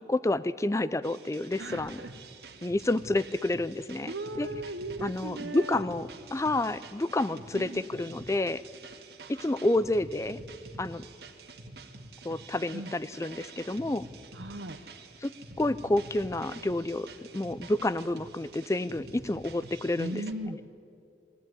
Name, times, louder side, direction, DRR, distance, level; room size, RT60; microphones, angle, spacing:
voice 1, 0.0-2.0 2.6-4.5 5.0-8.6 9.3-10.4 10.8-11.0 12.2-14.1 15.2-17.1 17.3-20.2, left 2 dB, 15° left, 17 dB, 0.4 m, -29 dB
sound 1, 1.0-20.3, right 2 dB, 60° right, 1.8 m, -47 dB
voice 2, 1.6-2.1 4.1-5.8 7.5-7.8 9.2-9.7 12.7-12.9 14.3-14.8 19.9-20.6, right 1 dB, 85° right, 4 dB, 1.0 m, -38 dB
21.0 x 15.5 x 9.7 m, 2.6 s
head